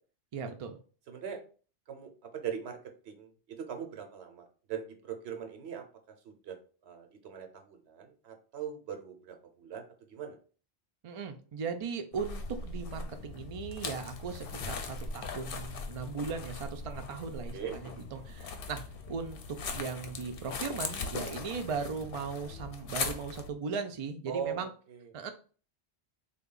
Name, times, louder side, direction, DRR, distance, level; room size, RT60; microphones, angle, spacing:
voice 1, 0.3-0.8 11.0-18.8 19.1-24.7 25.1-25.3, right 5 dB, 50° right, 6 dB, 0.4 m, -38 dB
voice 2, 1.1-1.4 1.9-2.8 3.0-5.8 6.2-6.6 6.8-10.4 17.5-18.0 24.3-25.1, right 7 dB, 85° right, 5 dB, 1.0 m, -41 dB
sound 1, 12.1-23.5, left 4 dB, 65° left, 0.7 m, -40 dB
3.4 x 2.3 x 3.7 m, 0.39 s
omnidirectional pair, 1.1 m